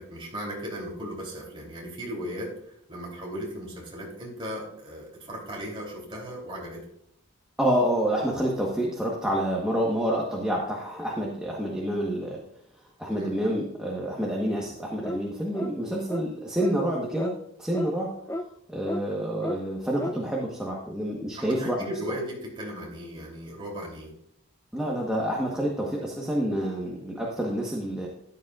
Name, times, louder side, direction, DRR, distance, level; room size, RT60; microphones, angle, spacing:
voice 1, 0.0-6.9 13.1-13.3 21.4-24.1, equal, 25° right, -3 dB, 3.1 m, -37 dB
voice 2, 7.6-12.4 13.0-17.3 17.6-18.1 18.7-21.8 24.7-28.1, right 1 dB, 5° right, -3 dB, 1.2 m, -28 dB
sound 1, 15.0-15.3 15.5-15.8 16.1-16.3 16.6-16.8 17.2-17.3 17.7-17.9 18.3-18.5 18.9-19.0 19.4-19.6 20.0-20.2, left 1 dB, 10° left, 0.4 m, -32 dB
13.5 x 10.0 x 2.4 m, 0.73 s
head